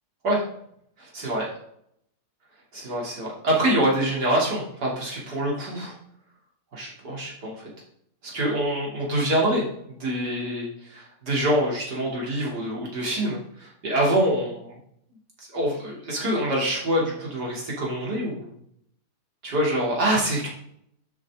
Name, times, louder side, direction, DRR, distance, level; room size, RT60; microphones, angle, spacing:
voice 1, 1.0-1.5 2.7-6.0 6.7-7.7 8.2-14.8 15.4-18.5 19.4-20.5, right 1 dB, 90° right, -4 dB, 3.7 m, -25 dB
11.5 x 8.4 x 3.8 m, 0.72 s
omnidirectional pair, 1.7 m